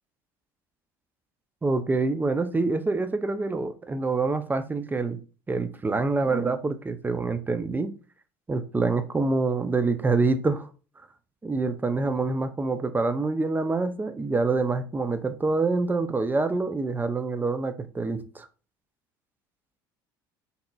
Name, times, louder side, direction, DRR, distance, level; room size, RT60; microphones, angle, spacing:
voice 1, 1.6-5.2 5.5-7.9 8.5-10.7 11.4-18.5, right 3 dB, 15° right, 0.5 m, -26 dB
4.1 x 3.8 x 2.2 m
hypercardioid pair, 75°, 11 cm